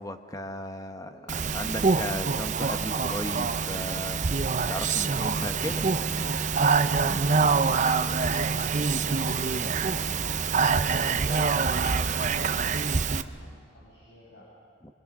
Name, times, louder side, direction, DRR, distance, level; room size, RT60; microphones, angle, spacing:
voice 1, 0.0-1.1 1.5-4.3 4.7-5.9, left 1 dB, 20° left, 7 dB, 1.1 m, -35 dB
voice 2, 1.0-1.3 6.9-10.0 10.7-11.4 11.6-14.5, equal, 65° left, -6 dB, 6.8 m, -48 dB
Speech, 1.3-13.2, right 5 dB, 40° right, 0.6 m, -25 dB
25.0 x 25.0 x 6.1 m, 2.2 s
head